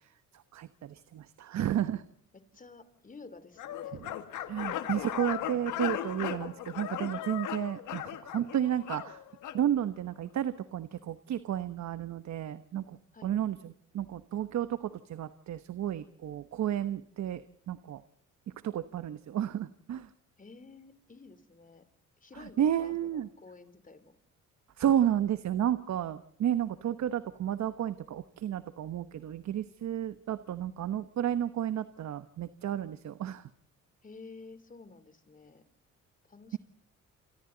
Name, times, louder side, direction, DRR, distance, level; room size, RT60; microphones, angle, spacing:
voice 1, 0.5-2.0 3.9-4.1 4.5-9.2 9.5-12.9 13.2-13.6 13.9-17.4 17.7-18.0 18.6-20.1 22.4-23.3 24.8-33.4, right 10 dB, 65° right, 12 dB, 1.1 m, -32 dB
voice 2, 2.3-4.0 4.6-5.3 13.1-13.3 20.4-21.8 22.2-24.1 34.0-35.6 36.3-36.6, left 4 dB, 25° left, 12 dB, 3.4 m, -51 dB
sound 1, 3.6-9.6, left 11 dB, 85° left, 1.8 m, -37 dB
29.0 x 27.5 x 4.0 m, 0.68 s
cardioid pair, 90°, 30 cm